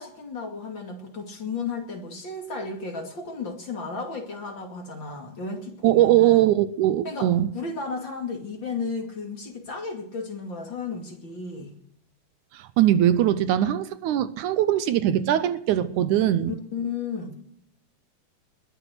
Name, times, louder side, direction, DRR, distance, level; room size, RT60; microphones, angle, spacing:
voice 1, 0.0-6.4 7.0-11.7 16.7-17.4, left 4 dB, 40° left, 3 dB, 3.0 m, -34 dB
voice 2, 5.8-7.5 12.5-16.5, right 12 dB, 75° right, 13 dB, 2.2 m, -21 dB
21.0 x 8.1 x 8.0 m, 0.71 s
omnidirectional pair, 3.7 m